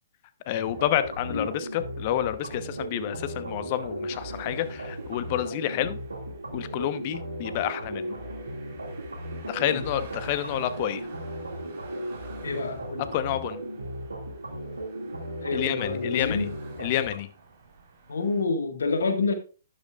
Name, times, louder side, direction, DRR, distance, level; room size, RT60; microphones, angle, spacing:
voice 1, 0.5-6.0 6.5-8.2 9.5-11.0 13.1-13.6 15.5-16.5 16.8-17.3, left 12 dB, 40° left, 13 dB, 0.9 m, -29 dB
sound 1, 0.7-18.4, right 4 dB, 50° right, 4.2 m, -51 dB
sound 2, 0.7-17.2, right 1 dB, 85° right, 2.2 m, -36 dB
voice 2, 12.4-13.1 15.4-16.6 18.1-19.3, left 3 dB, 70° left, 7 dB, 1.7 m, -28 dB
12.0 x 10.5 x 2.4 m, 0.35 s
figure-of-eight pair, 125°, 0 cm